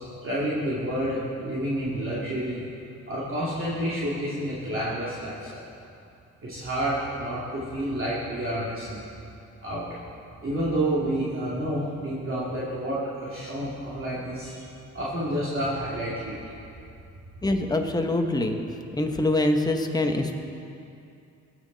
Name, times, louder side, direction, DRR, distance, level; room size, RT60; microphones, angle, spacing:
voice 1, 0.2-2.6 3.1-5.6 6.4-9.0 9.6-9.8 10.4-14.7 14.9-16.4, right 1 dB, 45° right, -9 dB, 2.7 m, -29 dB
voice 2, 17.4-18.6 18.9-20.4, left 1 dB, 15° left, 4 dB, 1.1 m, -24 dB
18.5 x 7.6 x 4.0 m, 2.6 s
cardioid pair, 90°, 30 cm